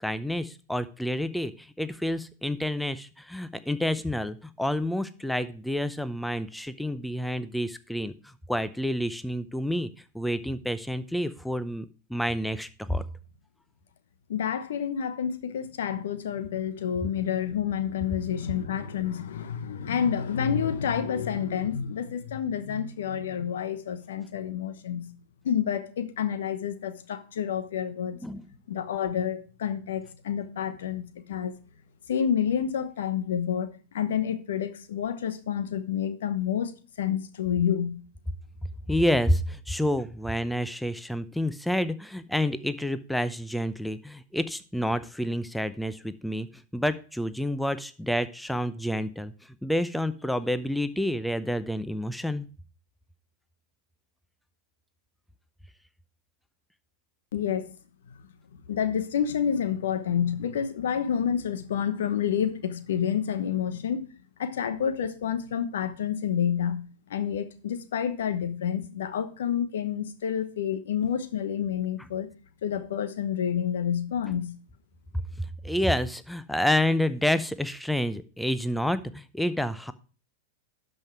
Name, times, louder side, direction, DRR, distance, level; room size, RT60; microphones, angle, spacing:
voice 1, 0.0-9.9 10.1-13.0 28.2-28.4 38.9-46.5 46.7-52.5 74.3-74.4 75.4-79.9, left 1 dB, ahead, 0.7 m, -29 dB
voice 2, 14.3-25.1 25.4-28.2 28.7-31.5 32.1-33.7 33.9-38.0 57.3-57.7 58.7-64.1 64.4-66.8 67.1-72.3 72.6-74.5, left 8 dB, 75° left, 1.0 m, -29 dB
12.0 x 5.5 x 4.6 m
hypercardioid pair, 100°, 0 cm